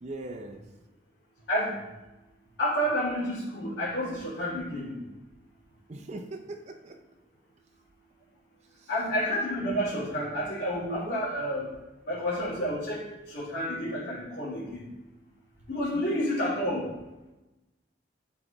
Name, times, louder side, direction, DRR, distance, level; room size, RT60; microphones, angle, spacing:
voice 1, 0.0-0.6 5.9-7.0 8.8-8.9 11.0-11.2 15.9-16.3, right 2 dB, 40° right, 3 dB, 0.5 m, -40 dB
voice 2, 1.5-1.8 2.6-5.0 8.9-11.7 12.1-14.9 15.7-16.9, equal, 70° left, -13 dB, 2.2 m, -30 dB
10.5 x 3.9 x 3.0 m, 1.0 s
head